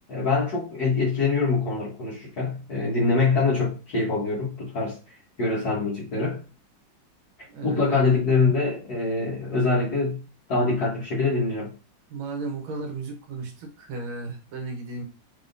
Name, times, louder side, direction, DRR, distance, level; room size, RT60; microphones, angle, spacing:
voice 1, 0.1-5.0 5.4-6.4 7.6-10.2 10.5-11.7, left 3 dB, 55° left, 1.7 m, -24 dB
voice 2, 7.5-8.1 12.1-15.0, right 3 dB, 80° right, 1.7 m, -34 dB
4.2 x 3.5 x 2.6 m
omnidirectional pair, 2.2 m